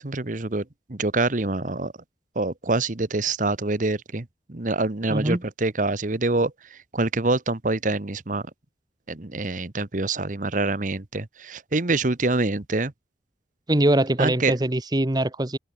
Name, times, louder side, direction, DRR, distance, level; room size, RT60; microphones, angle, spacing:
voice 1, 0.0-1.9 2.3-8.4 9.1-12.9 14.2-14.5, right 2 dB, 45° right, 1.2 m, -26 dB
voice 2, 5.1-5.4 13.7-15.6, right 1 dB, 20° right, 1.1 m, -22 dB
head